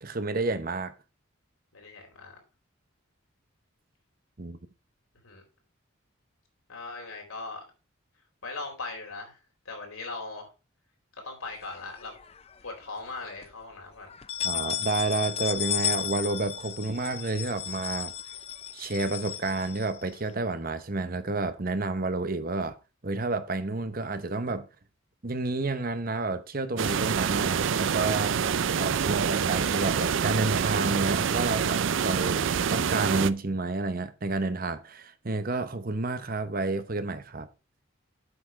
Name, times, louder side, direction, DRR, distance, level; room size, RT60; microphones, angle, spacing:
voice 1, 0.0-0.9 4.4-4.6 14.4-18.1 18.7-22.8 23.0-24.7 25.2-28.3 28.8-37.5, right 3 dB, 40° right, 0.9 m, -30 dB
voice 2, 1.7-2.3 5.2-5.4 6.7-7.6 8.4-9.4 9.7-10.5 11.2-12.1 12.6-14.1, left 3 dB, 85° left, 4.0 m, -39 dB
sound 1, 11.6-12.5 13.0-13.1 13.4-13.5 14.1-20.3, left 10 dB, 30° left, 0.5 m, -34 dB
sound 2, 26.8-33.3, right 7 dB, 65° right, 0.4 m, -26 dB
8.1 x 6.1 x 4.7 m
head